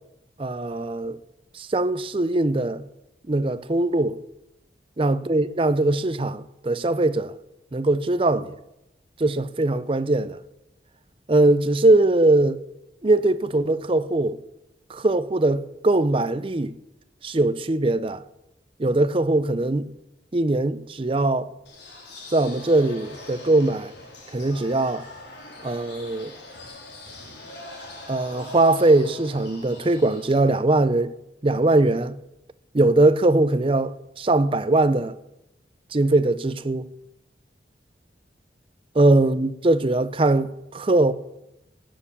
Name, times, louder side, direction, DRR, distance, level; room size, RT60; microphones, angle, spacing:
voice 1, 0.4-1.2 1.5-2.8 3.3-4.2 5.0-7.3 7.7-8.6 9.2-10.4 11.3-12.6 13.0-14.4 14.9-16.7 17.2-18.2 18.8-19.9 20.3-21.5 22.3-23.9 24.3-25.0 25.6-26.3 28.1-31.1 31.4-32.1 32.7-35.2 35.9-36.9 39.0-41.1, right 2 dB, 30° right, 0.5 m, -21 dB
sound 1, 21.7-30.4, left 2 dB, 70° left, 3.5 m, -42 dB
18.0 x 6.8 x 7.2 m
head